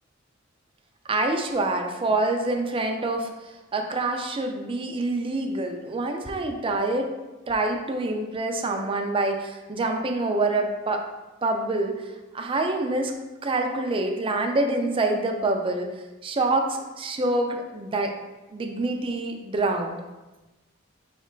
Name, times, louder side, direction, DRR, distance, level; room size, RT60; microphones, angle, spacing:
voice 1, 1.1-3.3 3.7-7.1 7.5-11.0 11.4-12.1 12.3-13.1 13.4-15.9 16.2-18.1 18.5-20.0, right 2 dB, 25° right, 3 dB, 0.4 m, -26 dB
3.3 x 2.8 x 4.4 m, 1.1 s
head